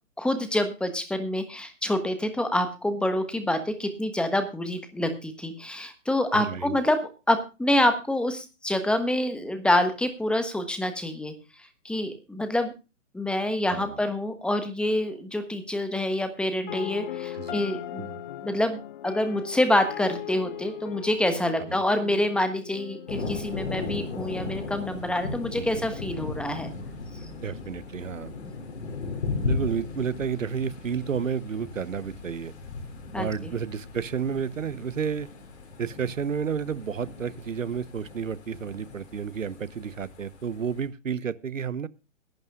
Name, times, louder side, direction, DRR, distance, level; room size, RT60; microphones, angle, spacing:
voice 1, 0.2-11.3 11.8-12.7 13.1-18.1 18.4-26.7 33.1-33.5, left 1 dB, 5° left, 9 dB, 1.4 m, -27 dB
voice 2, 6.3-6.8 13.7-13.9 17.4-17.6 18.0-18.2 21.7-21.8 25.6-25.8 27.4-28.3 29.5-32.5 33.2-35.3 35.8-41.9, right 7 dB, 80° right, 19 dB, 1.0 m, -31 dB
sound 1, 16.7-24.7, left 11 dB, 40° left, 1.1 m, -39 dB
Thunder, 23.1-40.9, left 3 dB, 60° left, 5.8 m, -37 dB
22.5 x 12.0 x 2.3 m, 0.30 s
figure-of-eight pair, 135°, 38 cm